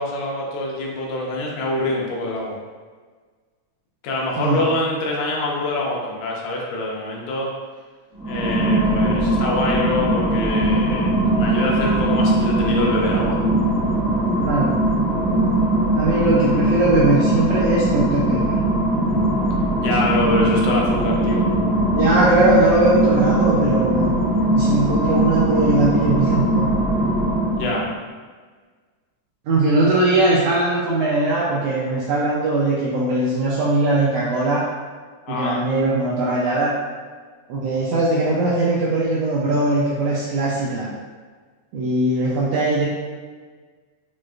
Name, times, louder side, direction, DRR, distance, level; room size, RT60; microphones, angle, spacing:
voice 1, 0.0-2.6 4.0-7.5 8.2-13.4 19.8-21.4 27.6-27.8 35.2-35.6, left 2 dB, 90° left, -2 dB, 2.2 m, -25 dB
sound 1, 8.1-27.9, right 1 dB, 55° right, 0.6 m, -20 dB
voice 2, 14.4-14.8 15.9-18.5 21.9-24.1 24.5-26.7 29.5-34.7 35.3-36.8 37.5-40.9 41.7-42.9, right 2 dB, 80° right, -5 dB, 1.5 m, -20 dB
6.3 x 2.4 x 2.4 m, 1.5 s
omnidirectional pair, 3.3 m